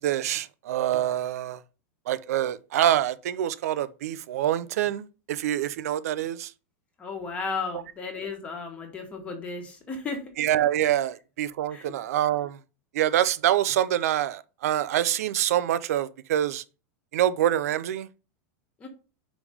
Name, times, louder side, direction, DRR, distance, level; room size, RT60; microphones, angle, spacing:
voice 1, 0.0-1.6 2.1-6.5 10.4-12.6 12.9-16.6 17.1-18.1, right 12 dB, 80° right, 0.6 m, -26 dB
voice 2, 7.0-10.3 11.7-11.9 18.8-18.9, left 4 dB, 15° left, 1.4 m, -34 dB
5.2 x 5.0 x 5.0 m
supercardioid pair, 170°, 8 cm